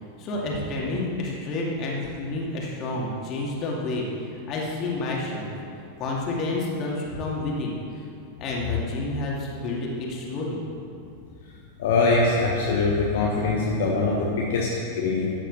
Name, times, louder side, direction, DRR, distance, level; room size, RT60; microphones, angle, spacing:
voice 1, 0.2-5.5 6.0-8.0 8.4-10.6, left 2 dB, 35° left, -3 dB, 2.5 m, -29 dB
voice 2, 11.8-15.3, left 3 dB, 55° left, -3 dB, 1.3 m, -23 dB
13.5 x 9.0 x 4.2 m, 2.5 s
figure-of-eight pair, 90°, 0 cm